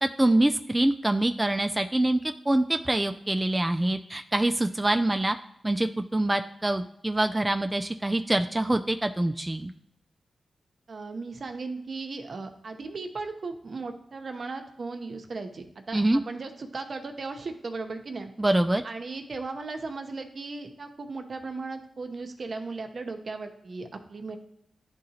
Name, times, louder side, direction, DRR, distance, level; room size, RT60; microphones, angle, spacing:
voice 1, 0.0-5.4 5.6-9.7 15.9-16.2 18.4-18.8, right 1 dB, 15° right, 6 dB, 0.3 m, -25 dB
voice 2, 10.9-18.3 18.8-24.4, right 3 dB, 60° right, 5 dB, 0.8 m, -37 dB
10.5 x 3.7 x 2.8 m, 0.79 s
cardioid pair, 60°, 0 cm